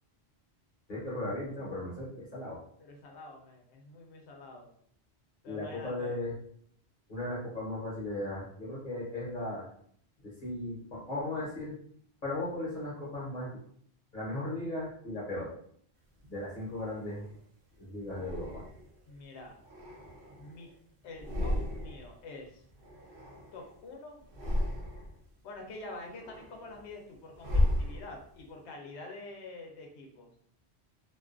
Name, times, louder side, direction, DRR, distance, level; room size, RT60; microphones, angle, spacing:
voice 1, 0.9-2.6 5.5-6.3 7.1-9.6 10.2-11.7 12.2-13.6 14.1-15.5 16.3-17.2 17.8-18.6, left 1 dB, 50° left, -6 dB, 0.9 m, -36 dB
voice 2, 2.8-4.7 5.4-6.1 19.1-19.6 20.3-20.7 21.0-22.6 23.5-24.3 25.4-30.3, left 2 dB, 85° left, 1 dB, 0.9 m, -46 dB
sound 1, 16.2-17.4 18.1-19.0 19.5-20.7 21.1-22.2 22.4-23.8 24.2-25.3 25.7-28.5, left 1 dB, 60° right, 0.7 m, -35 dB
2.5 x 2.2 x 2.4 m, 0.62 s
omnidirectional pair, 1.1 m